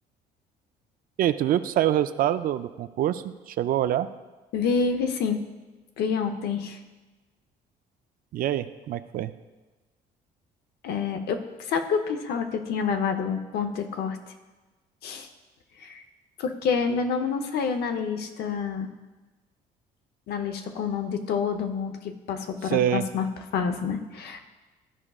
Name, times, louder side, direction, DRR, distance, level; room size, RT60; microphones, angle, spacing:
voice 1, 1.2-4.1 8.3-9.3 22.7-23.0, right 11 dB, 60° right, 12 dB, 0.4 m, -25 dB
voice 2, 4.5-5.4 6.0-6.8 10.8-14.2 15.0-15.3 15.8-16.0 16.4-18.9 20.3-23.3 23.5-24.4, left 6 dB, 70° left, 6 dB, 0.8 m, -28 dB
13.5 x 4.9 x 2.4 m, 1.2 s
cardioid pair, 110°, 17 cm